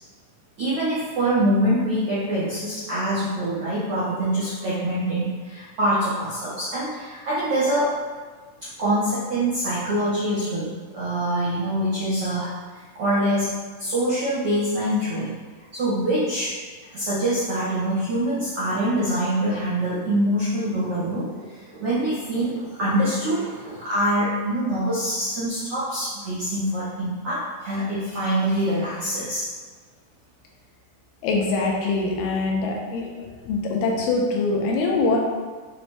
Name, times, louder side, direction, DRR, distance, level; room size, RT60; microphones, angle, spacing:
voice 1, 0.6-7.9 8.6-15.3 15.7-16.5 16.9-29.5, right 1 dB, 75° right, -10 dB, 1.2 m, -25 dB
voice 2, 31.2-33.1 33.4-35.2, left 3 dB, 80° left, -1 dB, 2.3 m, -23 dB
6.0 x 2.6 x 3.3 m, 1.5 s
omnidirectional pair, 4.1 m